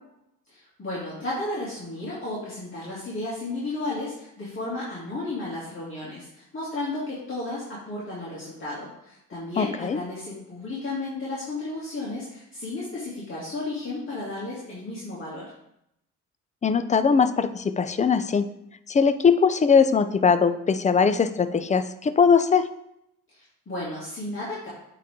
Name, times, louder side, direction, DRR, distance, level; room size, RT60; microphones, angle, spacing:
voice 1, 0.5-15.5 23.3-24.7, left 2 dB, 40° left, -9 dB, 2.6 m, -33 dB
voice 2, 9.6-10.0 16.6-18.5 18.9-22.7, left 6 dB, 25° left, 12 dB, 0.5 m, -20 dB
8.4 x 3.9 x 3.7 m, 0.79 s
cardioid pair, 90°, 30 cm